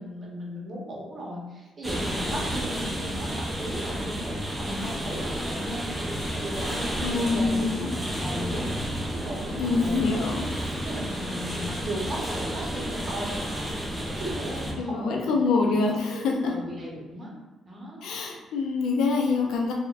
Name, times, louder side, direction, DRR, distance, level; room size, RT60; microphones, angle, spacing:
voice 1, 0.0-3.3 3.6-8.7 9.1-10.1 10.8-12.2 12.5-13.5 14.0-15.4 15.7-17.3 17.7-18.0, equal, 40° right, -3 dB, 0.9 m, -36 dB
sound 1, 1.8-14.7, equal, 10° right, 0.6 m, -31 dB
voice 2, 7.0-7.9 9.6-10.6 14.8-16.5 18.0-19.7, left 4 dB, 85° left, 0 dB, 0.4 m, -25 dB
3.4 x 2.1 x 2.4 m, 1.1 s
cardioid pair, 90°, 0 cm